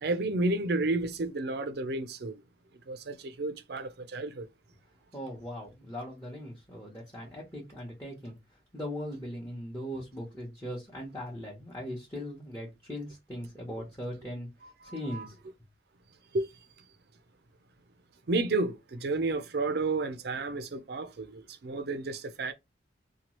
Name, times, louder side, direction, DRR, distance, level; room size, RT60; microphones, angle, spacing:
voice 1, 0.0-2.4 2.9-4.5 14.6-15.3 16.3-16.5 18.3-22.5, right 2 dB, 55° right, 0.5 m, -31 dB
voice 2, 5.1-8.3 8.7-14.5 14.8-15.3, equal, 15° left, 0.8 m, -39 dB
2.9 x 2.3 x 3.0 m
head